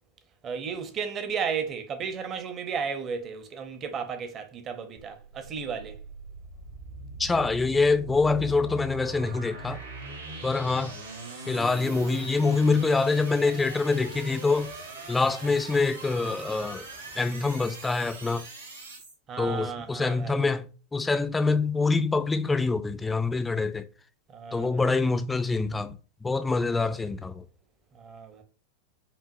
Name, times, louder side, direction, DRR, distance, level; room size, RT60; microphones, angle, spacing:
voice 1, 0.4-6.0 19.3-20.5 24.3-25.0 26.7-27.1 27.9-28.4, right 6 dB, 30° right, 0.6 m, -34 dB
sound 1, 5.0-19.1, right 2 dB, 65° right, 1.3 m, -41 dB
voice 2, 7.2-9.8 10.4-10.9 11.5-14.7 15.1-16.9 17.2-18.4 19.4-20.7 20.9-23.9 24.5-27.4, left 3 dB, 10° left, 0.3 m, -25 dB
5.1 x 2.4 x 2.6 m
figure-of-eight pair, 90°, 0 cm